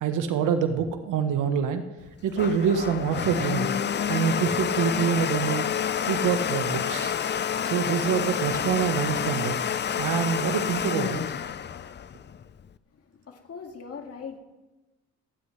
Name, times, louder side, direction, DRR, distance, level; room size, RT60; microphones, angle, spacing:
voice 1, 0.0-1.8 2.2-3.7 4.1-5.7 6.1-7.1 7.6-9.6 10.0-11.2, right 7 dB, 85° right, 8 dB, 1.2 m, -26 dB
Domestic sounds home sounds, 2.0-12.7, left 8 dB, 35° left, 0.6 m, -28 dB
voice 2, 12.9-14.4, left 6 dB, 50° left, 3 dB, 2.2 m, -41 dB
27.5 x 9.9 x 3.3 m, 1.1 s
cardioid pair, 90°, 30 cm